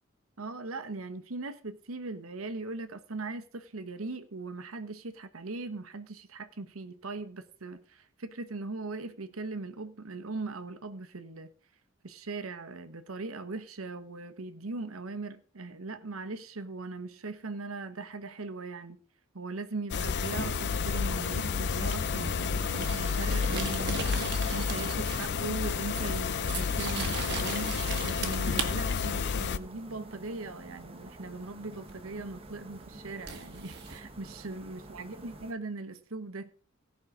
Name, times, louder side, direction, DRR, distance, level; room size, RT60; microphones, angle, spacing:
voice 1, 0.4-11.5 12.0-19.0 19.3-24.2 24.5-36.5, right 3 dB, 80° right, 1.1 m, -39 dB
sound 1, 19.9-29.6, left 6 dB, 55° left, 0.6 m, -30 dB
sound 2, 20.4-35.5, right 2 dB, 30° right, 1.4 m, -48 dB
sound 3, 22.3-25.3 25.6-28.7 31.9-32.0 33.3-34.0, right 5 dB, 55° right, 1.6 m, -38 dB
17.0 x 5.7 x 4.9 m
head